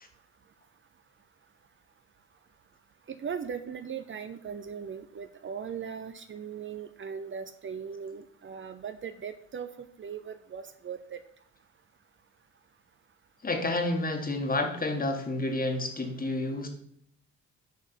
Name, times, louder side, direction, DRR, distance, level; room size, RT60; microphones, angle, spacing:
voice 1, 3.1-11.2, right 7 dB, 40° right, 10 dB, 0.7 m, -39 dB
voice 2, 13.4-16.7, left 2 dB, 30° left, 5 dB, 1.8 m, -29 dB
9.2 x 5.0 x 6.0 m, 0.67 s
cardioid pair, 90°, 30 cm